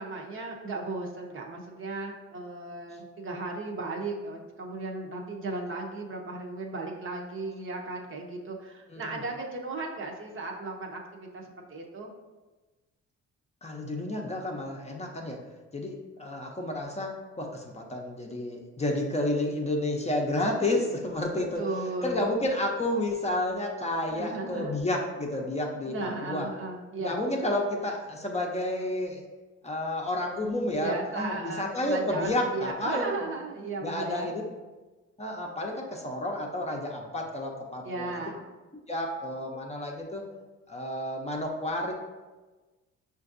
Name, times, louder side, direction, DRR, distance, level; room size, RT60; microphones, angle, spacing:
voice 1, 0.0-12.1 21.6-22.3 24.1-24.8 25.9-27.1 30.8-34.3 37.8-38.4, right 3 dB, 40° right, 0 dB, 0.7 m, -36 dB
voice 2, 8.9-9.2 13.6-15.4 15.7-21.6 22.0-26.5 27.0-29.2 29.6-33.1 33.8-34.4 35.2-38.1 38.9-40.3 40.7-41.9, left 1 dB, 20° left, 0 dB, 0.6 m, -31 dB
5.6 x 2.5 x 2.5 m, 1.2 s
cardioid pair, 80°, 30 cm